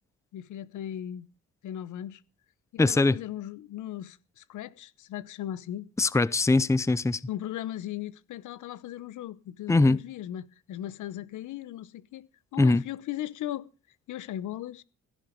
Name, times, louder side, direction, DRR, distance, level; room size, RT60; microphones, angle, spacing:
voice 1, 0.3-1.3 1.6-2.2 2.7-5.9 6.6-6.7 7.3-12.3 12.5-13.7 14.1-14.8, left 12 dB, 80° left, 1.0 m, -37 dB
voice 2, 2.8-3.2 6.0-7.2 9.7-10.0 12.6-12.8, left 3 dB, 10° left, 0.6 m, -22 dB
16.5 x 11.0 x 5.2 m
cardioid pair, 90°, 30 cm